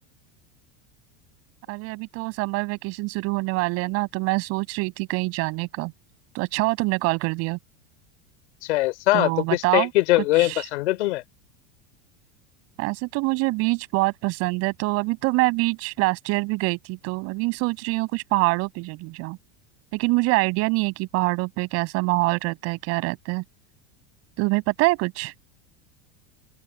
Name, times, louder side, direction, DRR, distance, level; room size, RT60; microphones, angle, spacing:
voice 1, 1.7-5.9 6.3-7.6 9.1-9.9 10.4-10.6 12.8-19.4 19.9-23.4 24.4-25.3, right 25 dB, 45° right, 7.5 m, -25 dB
voice 2, 8.6-11.2, left 19 dB, 80° left, 4.1 m, -22 dB
open air
supercardioid pair, 165°, 33 cm